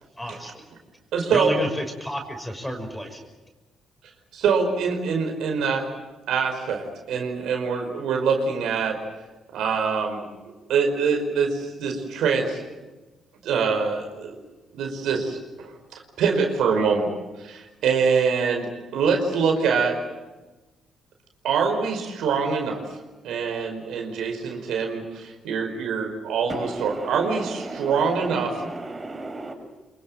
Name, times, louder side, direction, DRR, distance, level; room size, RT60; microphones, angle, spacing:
voice 1, 0.2-0.6 1.3-3.2, equal, 5° left, 5 dB, 5.9 m, -31 dB
voice 2, 1.1-1.5 4.3-5.9 6.3-9.0 9.5-10.3 10.7-12.6 13.4-14.4 14.7-17.1 17.4-20.0 21.4-22.8 23.2-28.5, right 5 dB, 80° right, 3 dB, 5.1 m, -24 dB
voice 3, 26.5-29.5, right 2 dB, 20° right, 3 dB, 7.2 m, -34 dB
27.0 x 23.0 x 7.9 m, 1.2 s
cardioid pair, 90°, 0 cm